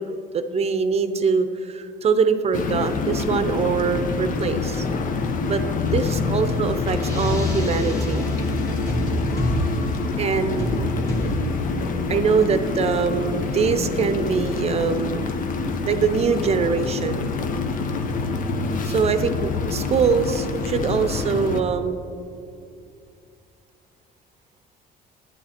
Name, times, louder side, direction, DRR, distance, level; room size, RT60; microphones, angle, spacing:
voice 1, 0.0-4.9 5.5-5.6 5.9-8.3 10.2-10.8 12.1-15.4 15.8-17.2 18.8-22.0, right 5 dB, 40° right, 10 dB, 0.7 m, -23 dB
sound 1, 2.5-21.6, left 4 dB, 50° left, 0.9 m, -26 dB
sound 2, 6.7-16.5, equal, 20° left, 2.3 m, -30 dB
11.5 x 9.9 x 4.3 m, 2.5 s
cardioid pair, 110°, 17 cm